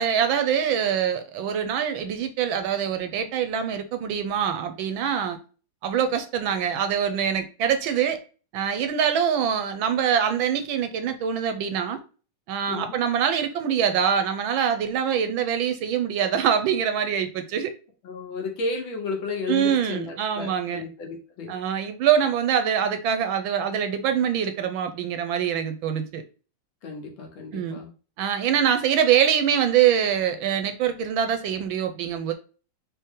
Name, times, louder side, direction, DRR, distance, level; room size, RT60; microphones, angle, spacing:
voice 1, 0.0-5.4 5.8-8.2 8.5-12.0 12.5-17.7 19.5-20.8 21.5-26.2 27.5-27.8 28.2-32.3, right 8 dB, 75° right, 1.3 m, -24 dB
voice 2, 12.7-13.1 18.0-21.5 26.8-27.9, left 3 dB, 65° left, 1.8 m, -33 dB
4.5 x 3.1 x 3.6 m
omnidirectional pair, 2.4 m